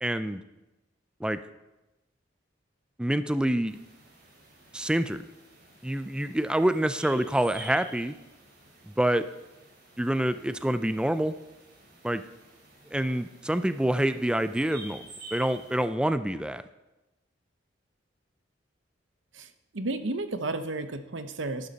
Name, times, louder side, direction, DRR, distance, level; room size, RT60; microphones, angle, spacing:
voice 1, 0.0-0.4 1.2-1.4 3.0-3.8 4.7-5.2 5.8-8.1 8.9-9.3 10.0-11.3 12.0-12.2 12.9-16.6, right 1 dB, 5° right, 11 dB, 0.3 m, -27 dB
sound 1, 3.7-15.8, right 2 dB, 55° right, 4.6 m, -50 dB
voice 2, 19.7-21.7, right 2 dB, 85° right, 9 dB, 0.9 m, -32 dB
12.0 x 11.0 x 4.1 m, 1.0 s
head